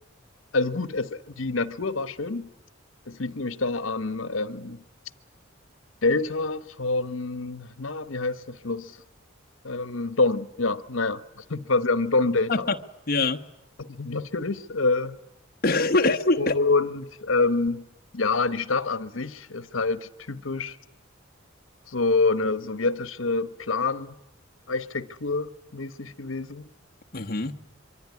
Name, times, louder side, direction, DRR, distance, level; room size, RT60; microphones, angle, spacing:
voice 1, 0.5-2.5 3.1-4.8 6.0-9.0 9.6-12.7 13.8-15.2 16.4-17.8 18.1-20.8 21.9-24.1 24.7-26.7, left 3 dB, 80° left, 1.2 m, -27 dB
voice 2, 13.1-13.4 15.6-16.5 27.1-27.6, left 3 dB, 45° left, 1.1 m, -23 dB
25.5 x 24.0 x 9.7 m
head